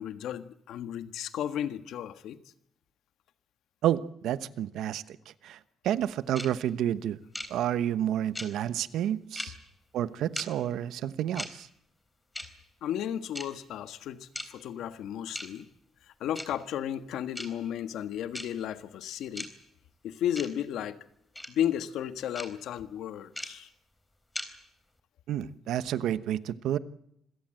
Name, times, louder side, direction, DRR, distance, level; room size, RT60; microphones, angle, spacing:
voice 1, 0.0-2.4 12.8-15.6 16.2-19.5 20.0-21.0 21.5-23.7, left 10 dB, 80° left, 1.5 m, -34 dB
voice 2, 3.8-5.2 5.4-5.6 5.8-7.2 7.5-9.5 9.9-11.7 25.3-26.8, right 11 dB, 80° right, 1.0 m, -30 dB
sound 1, 6.4-6.5 7.3-7.5 8.4-8.5 9.4-9.5 10.4-10.5 11.4-11.5 12.4-12.5 13.4-13.5 14.4-14.5 15.4-15.5 16.4-16.5 17.4-17.5 18.3-18.5 19.4-19.5 20.4-20.5 21.4-21.5 22.4-22.5 23.4-23.5 24.4-24.5, left 1 dB, 5° left, 3.8 m, -36 dB
26.5 x 17.0 x 7.7 m
cardioid pair, 90°, 0 cm